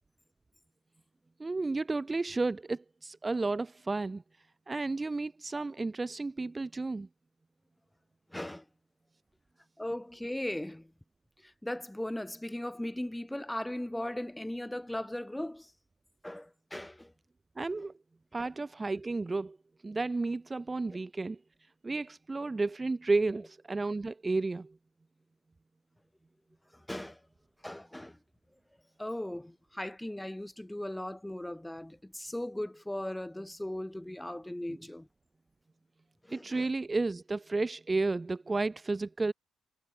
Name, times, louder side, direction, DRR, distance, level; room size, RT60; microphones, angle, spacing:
voice 1, 1.4-4.2 4.7-7.1 17.6-17.9 18.3-19.6 19.8-21.4 21.8-24.7 34.7-34.8 36.3-39.3, right 3 dB, 20° right, 1.4 m, -32 dB
voice 2, 8.3-8.6 9.8-10.9 11.4-15.7 16.2-17.1 18.4-18.5 26.7-27.2 27.6-28.2 29.0-35.1 36.2-36.7, left 1 dB, 5° left, 3.3 m, -38 dB
cardioid pair, 90°, 0 cm